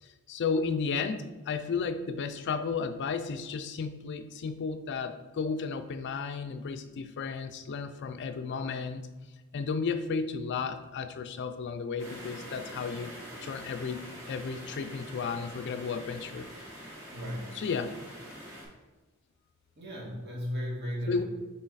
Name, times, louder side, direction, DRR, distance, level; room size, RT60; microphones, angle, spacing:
voice 1, 0.0-9.1 9.5-13.1 13.4-16.5 16.8-16.9 17.5-18.0 21.1-21.2, left 5 dB, 55° left, 10 dB, 0.4 m, -33 dB
sound 1, 12.0-18.6, equal, 15° right, 2.0 m, -45 dB
voice 2, 17.1-17.6 19.8-21.2, equal, 50° right, -3 dB, 1.8 m, -35 dB
6.1 x 3.9 x 4.0 m, 1.2 s
head